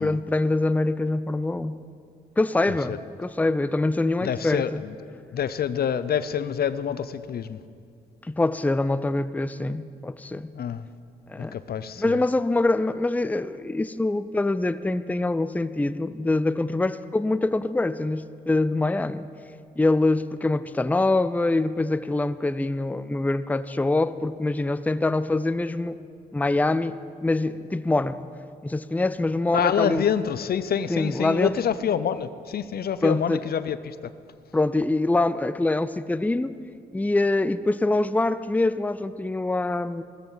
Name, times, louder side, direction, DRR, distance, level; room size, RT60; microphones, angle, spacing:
voice 1, 0.0-1.8 2.4-4.8 8.2-10.5 11.3-11.6 12.0-19.3 19.8-26.0 26.3-28.2 28.6-30.0 30.9-31.5 33.0-33.4 34.5-36.5 36.9-40.0, left 2 dB, 10° left, 13 dB, 0.5 m, -24 dB
voice 2, 4.2-4.9 5.3-7.6 10.5-10.9 11.4-12.2 29.5-34.0, left 8 dB, 60° left, 14 dB, 0.6 m, -27 dB
16.0 x 14.0 x 4.0 m, 2.3 s
supercardioid pair, 50°, 18 cm